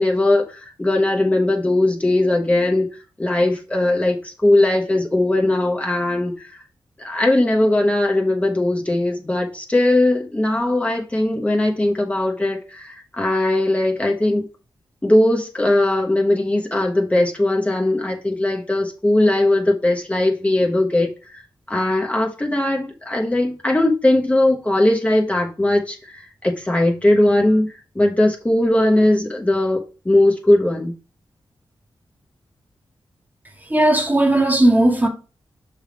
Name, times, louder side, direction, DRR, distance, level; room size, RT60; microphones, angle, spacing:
voice 1, 0.0-2.9 3.2-6.5 7.0-14.5 15.0-21.4 21.7-30.9, left 1 dB, 15° left, 0.9 m, -19 dB
voice 2, 33.7-35.1, right 1 dB, 20° right, 1.1 m, -16 dB
6.2 x 3.4 x 5.1 m
wide cardioid pair, 115°, 9 cm